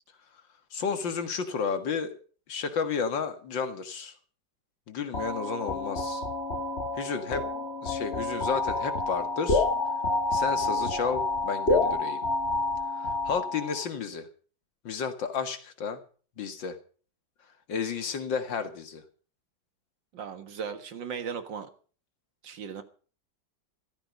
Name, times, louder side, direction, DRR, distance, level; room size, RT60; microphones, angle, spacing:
voice 1, 0.7-2.2 2.5-4.1 4.9-6.2 7.0-7.5 7.8-9.7 10.3-12.2 13.0-14.3 14.8-16.0 16.4-16.8 17.7-19.0, left 6 dB, 80° left, 8 dB, 2.4 m, -32 dB
sound 1, 5.1-13.9, left 2 dB, 35° left, 1.7 m, -29 dB
voice 2, 20.1-21.7 22.4-22.8, right 6 dB, 80° right, 9 dB, 2.3 m, -37 dB
15.0 x 14.0 x 5.2 m, 0.41 s
omnidirectional pair, 2.0 m